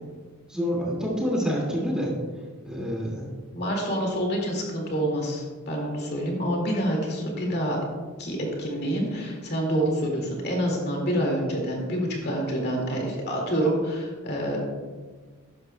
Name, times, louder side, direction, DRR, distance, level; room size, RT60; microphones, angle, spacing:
voice 1, 0.5-2.1 2.6-3.3, equal, 5° right, -4 dB, 2.1 m, -27 dB
voice 2, 3.5-7.8 8.2-14.6, equal, 45° left, -1 dB, 2.1 m, -27 dB
13.0 x 10.5 x 2.2 m, 1.5 s
head